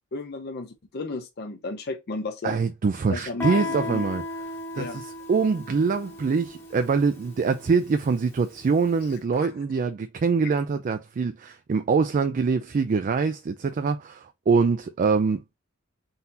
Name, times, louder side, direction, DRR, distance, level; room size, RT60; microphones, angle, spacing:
voice 1, 0.1-2.6 3.1-4.0 4.8-5.0 9.4-9.5, left 3 dB, 50° left, 0.6 m, -33 dB
voice 2, 2.4-4.2 4.7-15.6, right 5 dB, 40° right, 0.3 m, -24 dB
Guitar, 3.4-8.8, left 2 dB, 10° left, 0.9 m, -36 dB
3.9 x 2.8 x 3.8 m
head